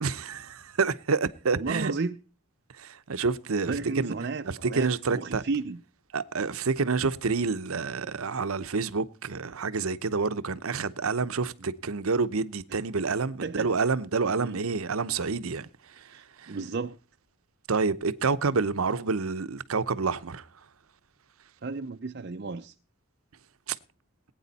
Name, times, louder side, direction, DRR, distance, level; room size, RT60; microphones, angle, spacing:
voice 1, 0.0-1.9 2.8-4.1 4.4-5.4 6.1-15.7 16.0-16.6 17.7-20.5 23.7-23.8, right 4 dB, 80° right, 0.8 m, -28 dB
voice 2, 1.6-2.2 3.7-5.8 11.6-11.7 12.7-12.8 13.4-13.7 14.4-14.6 16.0-17.0 21.6-22.7, right 4 dB, 50° right, 0.5 m, -33 dB
20.0 x 9.2 x 4.1 m
head